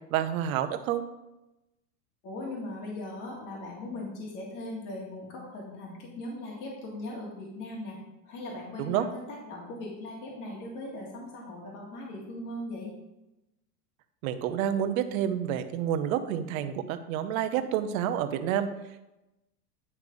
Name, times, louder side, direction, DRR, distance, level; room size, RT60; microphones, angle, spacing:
voice 1, 0.1-1.0 8.8-9.1 14.2-18.7, right 10 dB, 55° right, 9 dB, 0.8 m, -29 dB
voice 2, 2.2-12.9, left 1 dB, 40° left, -2 dB, 2.1 m, -39 dB
9.7 x 3.3 x 5.3 m, 0.94 s
supercardioid pair, 135°, 50 cm